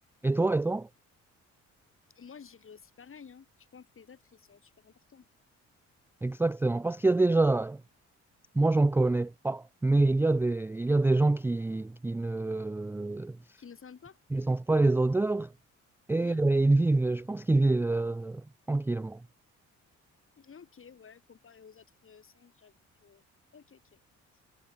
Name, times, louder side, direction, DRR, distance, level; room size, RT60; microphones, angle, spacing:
voice 1, 0.2-0.9 6.2-7.8 8.5-13.4 14.3-15.5 16.1-19.2, right 2 dB, 10° right, 0.4 m, -26 dB
voice 2, 2.1-5.3 7.5-7.6 13.6-14.2 16.1-16.4 20.4-22.7 23.0-23.2 23.5-24.0, left 6 dB, 45° left, 6.6 m, -52 dB
cardioid pair, 90°, 30 cm